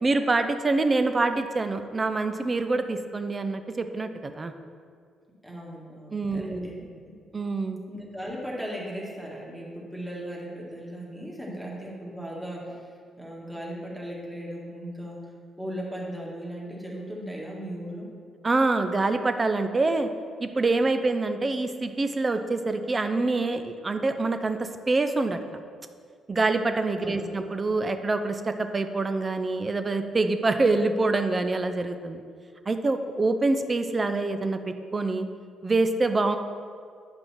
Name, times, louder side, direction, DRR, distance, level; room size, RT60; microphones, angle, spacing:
voice 1, 0.0-4.5 6.1-6.8 7.3-7.8 18.4-20.1 20.4-25.4 26.3-32.2 32.7-35.3 35.6-36.4, right 3 dB, 30° right, 8 dB, 0.6 m, -25 dB
voice 2, 5.4-7.1 7.9-12.8 13.2-15.2 15.6-18.1 27.0-27.3, equal, 5° right, -4 dB, 2.0 m, -37 dB
8.5 x 5.3 x 4.4 m, 2.1 s
hypercardioid pair, 45°, 0 cm